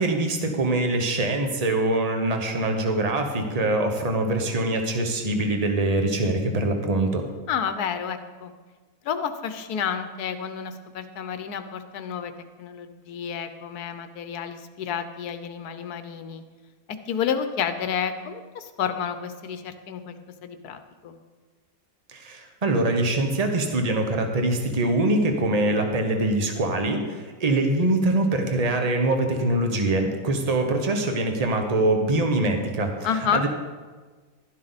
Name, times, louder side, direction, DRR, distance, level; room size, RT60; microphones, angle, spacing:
voice 1, 0.0-7.2 22.1-33.5, right 2 dB, 25° right, 4 dB, 1.2 m, -24 dB
voice 2, 7.5-8.5 9.0-12.3 12.6-16.4 16.9-20.2 20.4-21.2 33.0-33.4, left 7 dB, 85° left, 9 dB, 1.3 m, -30 dB
12.0 x 12.0 x 4.1 m, 1.4 s
omnidirectional pair, 1.6 m